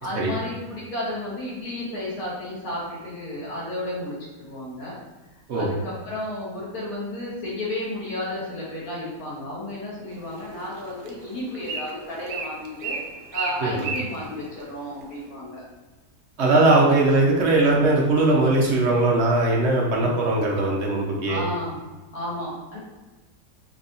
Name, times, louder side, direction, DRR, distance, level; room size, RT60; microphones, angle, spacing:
voice 1, 0.0-4.9 5.3-13.0 13.3-15.6 20.0-20.2 21.3-21.8 22.1-22.8, left 1 dB, 60° left, -7 dB, 1.7 m, -32 dB
Bird, 10.1-15.3, right 4 dB, 80° right, 1.1 m, -35 dB
voice 2, 16.4-21.4, right 2 dB, 65° right, -2 dB, 0.7 m, -20 dB
4.9 x 2.7 x 2.6 m, 1.2 s
omnidirectional pair, 1.8 m